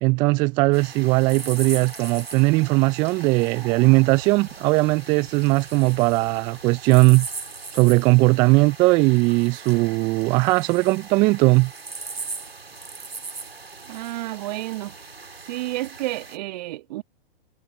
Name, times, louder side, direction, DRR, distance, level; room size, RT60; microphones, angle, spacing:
voice 1, 0.0-7.3 7.7-11.7, right 25 dB, 15° right, 0.3 m, -19 dB
sound 1, 0.7-16.4, right 4 dB, 85° right, 2.1 m, -39 dB
voice 2, 13.9-15.0 15.5-17.0, right 18 dB, 45° right, 2.0 m, -31 dB
figure-of-eight pair, 115°, 29 cm